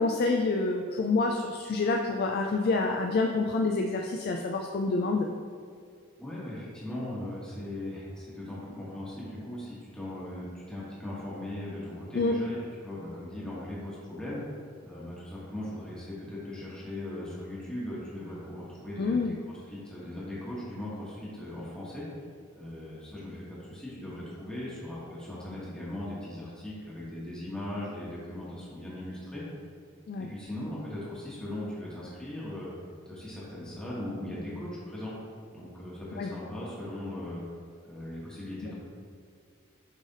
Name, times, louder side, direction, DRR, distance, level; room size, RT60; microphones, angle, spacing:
voice 1, 0.0-5.3 12.1-12.3 19.0-19.3 30.1-30.3 36.2-36.3, left 3 dB, 50° left, 2 dB, 0.3 m, -27 dB
voice 2, 6.2-14.4 14.8-22.1 22.6-29.4 30.2-32.7 33.1-35.1 35.5-37.4 37.8-38.7, left 1 dB, 5° left, -8 dB, 1.2 m, -39 dB
7.3 x 3.3 x 4.0 m, 2.2 s
head